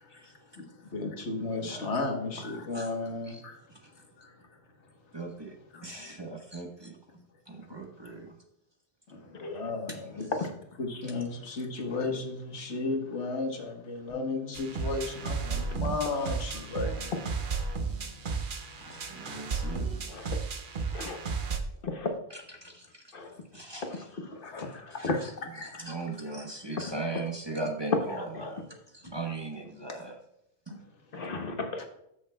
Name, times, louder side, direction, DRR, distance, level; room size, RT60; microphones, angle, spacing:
voice 1, 0.0-3.6 4.2-4.5 5.7-6.1 9.1-10.3 10.8-17.1 18.8-19.1 19.6-19.8 24.4-25.2 25.6-25.9 29.9-30.0 30.7-30.8 31.8-31.9, left 3 dB, 85° left, 1.5 m, -35 dB
voice 2, 1.6-2.0 2.7-2.9 3.3-3.4 3.7-3.9 5.1-5.5 5.8-7.0 7.5-8.3 18.3-19.9 22.3-23.1 23.5-24.0 25.0-25.3 25.6-28.6 28.9-30.2, right 3 dB, 25° right, 1.0 m, -39 dB
Bass guitar, 14.1-20.3, left 9 dB, 5° right, 2.9 m, -51 dB
sound 1, 14.5-21.6, right 5 dB, 50° right, 0.9 m, -33 dB
voice 3, 23.8-24.4 24.7-25.1 26.8-26.9 28.3-28.5 31.1-31.8, left 3 dB, 55° left, 1.2 m, -35 dB
13.5 x 6.5 x 2.3 m
omnidirectional pair, 1.2 m